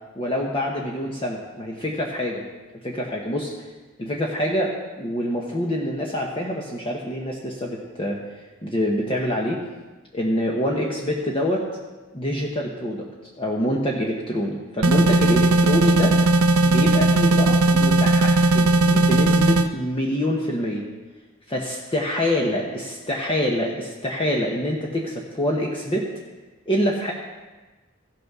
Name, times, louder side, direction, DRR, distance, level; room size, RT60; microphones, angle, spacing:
voice 1, 0.2-2.4 2.8-3.5 4.0-8.2 8.6-9.6 10.1-11.6 12.1-13.1 13.4-16.2 16.6-20.8 21.5-26.1 26.7-27.1, equal, 25° left, -2 dB, 1.1 m, -25 dB
sound 1, 14.8-19.7, right 2 dB, 85° right, 0.6 m, -17 dB
15.0 x 6.1 x 6.1 m, 1.2 s
head